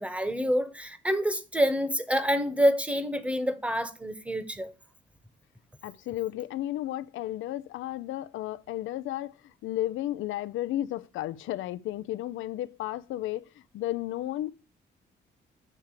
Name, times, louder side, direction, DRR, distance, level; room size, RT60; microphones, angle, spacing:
voice 1, 0.0-4.7, equal, 5° right, 1.2 m, -27 dB
voice 2, 5.8-13.4 13.7-14.5, left 14 dB, 80° left, 0.6 m, -33 dB
8.4 x 3.3 x 6.5 m
cardioid pair, 90°, 20 cm